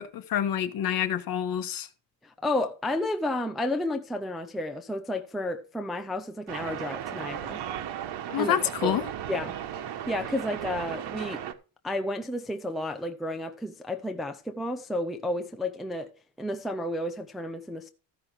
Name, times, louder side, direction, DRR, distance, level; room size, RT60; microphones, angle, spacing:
voice 1, 0.0-1.9 8.3-9.0, left 9 dB, 45° left, 1.3 m, -27 dB
voice 2, 2.2-7.6 8.4-8.6 8.8-8.9 9.3-9.6 10.1-11.4 11.8-16.1 16.4-17.9, left 1 dB, ahead, 0.5 m, -31 dB
sound 1, 6.5-11.5, right 10 dB, 60° right, 1.3 m, -36 dB
14.5 x 5.6 x 4.8 m
cardioid pair, 165°, 47 cm